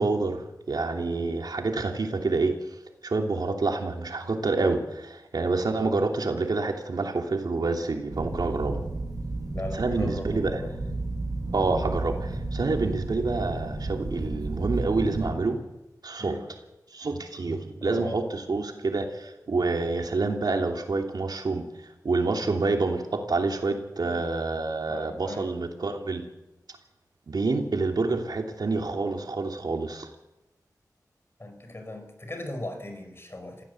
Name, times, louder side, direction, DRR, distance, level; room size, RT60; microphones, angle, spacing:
voice 1, 0.0-2.6 3.0-8.8 9.7-10.6 11.5-15.6 16.0-16.4 16.9-21.6 22.0-26.2 27.3-30.1, right 3 dB, 85° right, 3 dB, 3.0 m, -27 dB
sound 1, 8.1-15.3, right 2 dB, 65° right, 6.4 m, -32 dB
voice 2, 9.5-10.7 16.2-16.4 17.8-18.3 24.1-24.2 24.9-25.5 31.4-33.6, left 1 dB, 35° left, 6 dB, 5.2 m, -38 dB
27.5 x 15.5 x 7.9 m, 0.99 s
wide cardioid pair, 75°, 7 cm